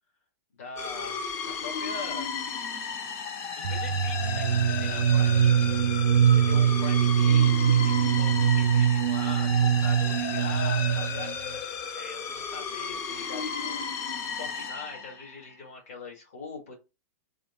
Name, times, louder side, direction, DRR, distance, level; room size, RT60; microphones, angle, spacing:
voice 1, 0.5-1.3 1.6-2.3 3.5-6.1 6.3-11.5 11.9-13.9 14.2-16.7, left 4 dB, 70° left, 0 dB, 1.8 m, -42 dB
sound 1, 0.8-15.5, left 6 dB, 30° left, 0.5 m, -34 dB
sound 2, 3.6-11.3, right 9 dB, 90° right, 0.4 m, -23 dB
3.6 x 2.2 x 3.5 m, 0.27 s
hypercardioid pair, 140°, 8 cm